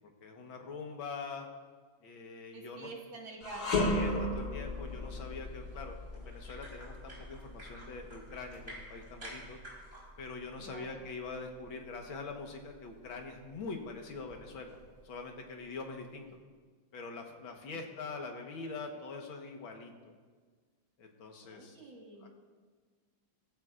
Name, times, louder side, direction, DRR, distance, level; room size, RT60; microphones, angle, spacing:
voice 1, 0.2-1.5 2.0-2.9 3.9-9.6 10.2-14.8 15.0-16.3 16.9-20.1 21.0-21.8 22.2-22.3, left 4 dB, 80° left, 3 dB, 2.1 m, -44 dB
voice 2, 2.5-4.0 10.6-11.1 21.4-22.3, right 3 dB, 75° right, -1 dB, 2.8 m, -47 dB
sound 1, 3.4-12.7 13.1-13.3 14.1-15.0, left 2 dB, 55° left, 2.5 m, -37 dB
sound 2, 4.6-10.0, right 1 dB, 20° right, 4.7 m, -52 dB
18.5 x 15.0 x 2.5 m, 1.5 s
omnidirectional pair, 2.1 m